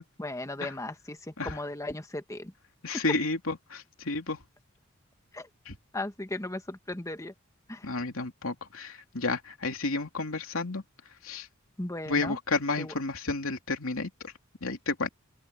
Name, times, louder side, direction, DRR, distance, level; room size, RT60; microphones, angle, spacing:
voice 1, 0.2-2.5 5.3-5.5 5.9-7.3 7.7-7.9 11.8-12.4 12.8-12.9, left 1 dB, 15° left, 1.5 m, -36 dB
voice 2, 2.8-4.4 5.7-5.8 7.8-10.8 11.2-11.5 12.1-14.3 14.6-15.1, left 3 dB, 90° left, 2.9 m, -31 dB
open air
head